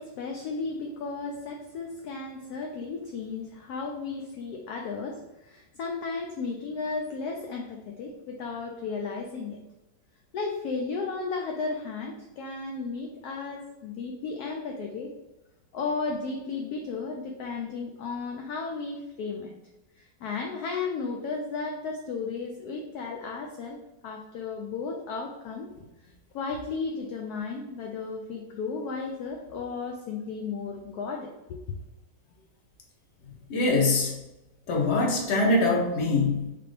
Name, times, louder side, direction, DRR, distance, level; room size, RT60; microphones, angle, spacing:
voice 1, 0.0-9.6 10.3-15.1 15.7-19.5 20.0-25.7 26.0-31.8, left 4 dB, 70° left, 2 dB, 0.9 m, -34 dB
voice 2, 33.5-34.2 34.7-36.5, left 2 dB, 45° left, -1 dB, 1.0 m, -23 dB
3.7 x 3.7 x 3.3 m, 0.98 s
omnidirectional pair, 1.9 m